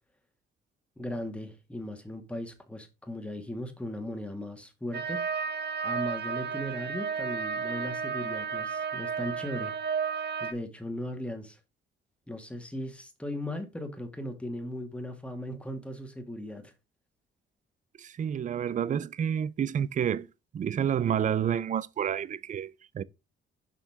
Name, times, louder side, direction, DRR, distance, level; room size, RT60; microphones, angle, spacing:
voice 1, 1.0-5.2 5.8-9.7 10.4-11.6 12.3-16.7, left 1 dB, 5° left, 2.0 m, -37 dB
sound 1, 4.9-10.5, right 6 dB, 55° right, 1.0 m, -32 dB
voice 2, 18.0-20.3 20.5-23.0, right 8 dB, 40° right, 0.5 m, -29 dB
6.9 x 5.7 x 3.6 m
cardioid pair, 90°, 20 cm